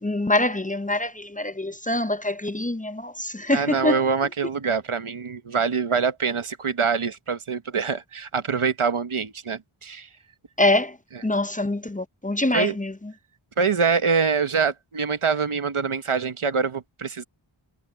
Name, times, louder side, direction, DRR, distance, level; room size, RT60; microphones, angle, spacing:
voice 1, 0.0-4.0 10.6-11.0 11.2-12.9, left 1 dB, 15° left, 0.7 m, -24 dB
voice 2, 3.5-10.1 11.1-11.2 12.5-12.8 13.6-17.2, right 5 dB, 80° right, 1.2 m, -25 dB
wide cardioid pair, 40°, 49 cm